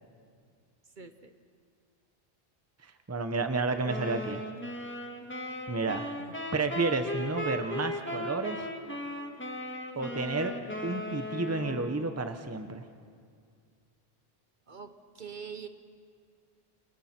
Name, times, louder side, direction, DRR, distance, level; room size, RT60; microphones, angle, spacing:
voice 1, 1.0-1.3 6.2-6.4 14.7-15.7, right 6 dB, 55° right, 8 dB, 1.1 m, -44 dB
voice 2, 2.8-4.4 5.7-6.1 6.5-8.7 10.0-10.5 10.8-12.8, right 3 dB, 15° right, 7 dB, 0.9 m, -31 dB
sound 1, 3.9-12.2, left 1 dB, 10° left, 1.6 m, -37 dB
29.5 x 27.0 x 4.4 m, 2.2 s
omnidirectional pair, 1.0 m